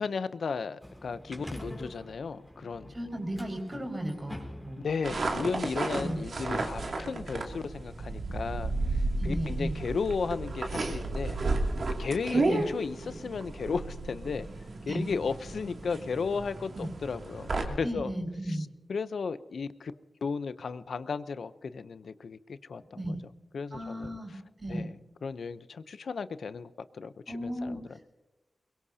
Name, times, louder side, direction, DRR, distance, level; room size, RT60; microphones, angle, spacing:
voice 1, 0.0-2.9 4.8-8.7 9.2-11.4 12.0-14.5 14.9-18.1 18.5-18.6 18.9-19.9 20.2-23.0 23.5-24.2 24.7-24.9 25.2-28.0, left 5 dB, 80° left, 13 dB, 0.7 m, -34 dB
sound 1, 0.8-6.5, equal, 5° left, 4.0 m, -45 dB
voice 2, 2.9-4.8 5.9-6.2 9.2-9.8 12.3-12.6 14.9-15.1 16.7-16.9 17.8-18.7 22.9-23.2 23.7-24.9 27.3-27.8, equal, 35° right, 3 dB, 5.1 m, -35 dB
sound 2, 5.0-17.6, right 2 dB, 65° right, 2.5 m, -33 dB
22.5 x 22.5 x 2.8 m, 1.1 s
wide cardioid pair, 80°, 0 cm